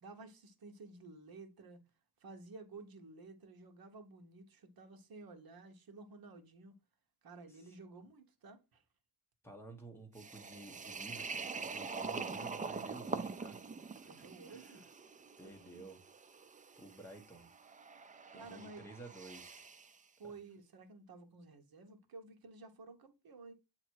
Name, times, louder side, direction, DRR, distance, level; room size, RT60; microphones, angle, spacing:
voice 1, 0.0-1.8 2.2-6.8 7.2-8.8 14.0-14.8 15.4-15.8 18.3-18.9 20.2-23.5, right 3 dB, 60° right, 1.2 m, -53 dB
voice 2, 9.4-13.6 14.0-14.8 15.4-16.0 16.8-17.5 18.3-19.6, right 2 dB, 5° left, 1.2 m, -53 dB
sound 1, 10.2-20.0, right 4 dB, 20° right, 0.3 m, -44 dB
8.2 x 2.9 x 4.6 m
wide cardioid pair, 165°, 40 cm